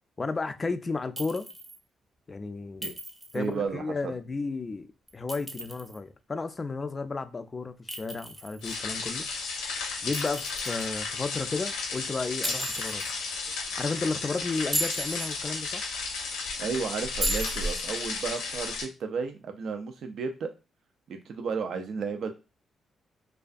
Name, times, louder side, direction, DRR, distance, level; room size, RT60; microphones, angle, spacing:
voice 1, 0.2-1.5 2.3-2.9 3.3-4.9 5.1-9.2 10.0-13.0 13.8-15.8, left 3 dB, 35° left, 0.4 m, -33 dB
Chink clink, 1.2-1.8 2.8-3.5 5.1-6.0 7.9-8.8 10.1-10.9 12.4-13.1 14.6-15.3 17.2-17.9, right 1 dB, 15° right, 0.7 m, -35 dB
voice 2, 3.3-4.1 16.6-20.5 21.1-22.3, right 5 dB, 65° right, 0.4 m, -33 dB
sound 1, 8.6-18.8, left 4 dB, 90° left, 0.6 m, -33 dB
2.3 x 2.2 x 2.5 m
supercardioid pair, 55°, 0 cm